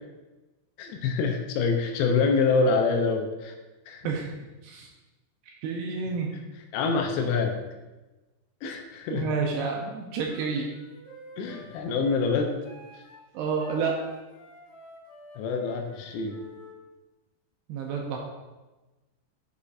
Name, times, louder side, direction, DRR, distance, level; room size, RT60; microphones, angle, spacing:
voice 1, 0.8-3.5 3.9-4.0 6.7-7.6 8.6-9.3 11.4-12.5 15.4-16.4, left 4 dB, 80° left, 3 dB, 2.7 m, -26 dB
voice 2, 4.0-4.4 4.6-4.9 5.5-6.3 9.1-10.7 13.3-14.0 17.7-18.2, right 5 dB, 85° right, 0 dB, 2.4 m, -29 dB
Wind instrument woodwind instrument, 10.3-16.8, equal, 50° left, 3.1 m, -49 dB
8.4 x 5.2 x 2.4 m, 1.1 s
omnidirectional pair, 5.1 m